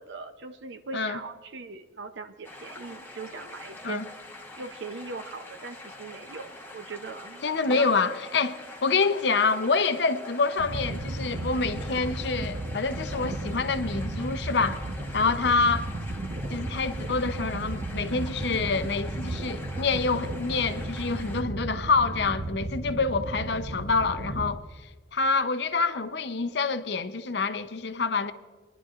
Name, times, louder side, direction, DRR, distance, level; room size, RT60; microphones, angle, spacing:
voice 1, 0.0-4.0 4.6-8.1, right 4 dB, 75° right, 0.7 m, -40 dB
sound 1, 2.4-21.4, left 2 dB, 10° left, 1.1 m, -45 dB
voice 2, 7.4-8.6 8.8-14.8 15.1-15.9 16.5-24.6 25.1-28.3, left 4 dB, 65° left, 0.7 m, -26 dB
sound 2, 10.6-24.5, right 2 dB, 45° right, 0.9 m, -34 dB
23.5 x 11.0 x 2.5 m
head